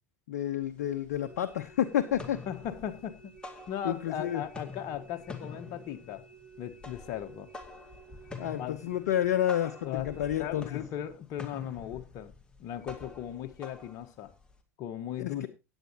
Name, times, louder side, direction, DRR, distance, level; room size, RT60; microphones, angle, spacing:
voice 1, 0.3-2.4 3.8-4.4 8.4-10.6 15.2-15.5, left 11 dB, 70° left, 0.9 m, -30 dB
sound 1, 0.6-0.7 1.1-1.7 2.0-4.2 4.4-14.6, left 4 dB, 10° left, 2.2 m, -47 dB
sound 2, 1.2-10.7, right 3 dB, 10° right, 3.2 m, -54 dB
voice 2, 2.5-6.2 6.6-7.5 8.2-8.3 8.6-8.8 9.8-10.1 10.4-12.3 12.6-14.3 14.8-15.5, left 10 dB, 50° left, 1.4 m, -38 dB
16.0 x 9.1 x 2.9 m
figure-of-eight pair, 80°, 9 cm